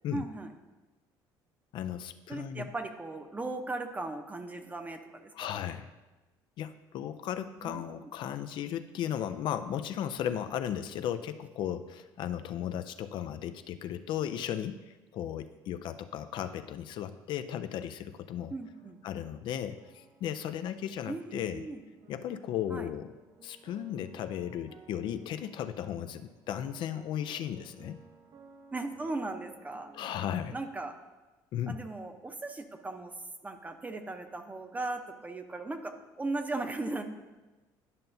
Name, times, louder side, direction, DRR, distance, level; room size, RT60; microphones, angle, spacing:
voice 1, 0.1-0.5 2.3-5.6 7.6-8.1 18.5-19.0 21.1-21.8 22.7-22.9 28.7-29.9 30.5-30.9 31.7-33.1 33.4-37.0, right 2 dB, 15° right, 6 dB, 0.7 m, -37 dB
voice 2, 1.7-2.7 5.3-5.9 6.6-18.5 19.0-21.6 22.1-23.1 23.4-28.0 29.9-30.6 31.5-31.8, left 10 dB, 60° left, 10 dB, 0.4 m, -36 dB
sound 1, 16.3-30.9, right 5 dB, 50° right, 0.6 m, -59 dB
10.5 x 5.5 x 2.7 m, 1.1 s
supercardioid pair, 95°, 9 cm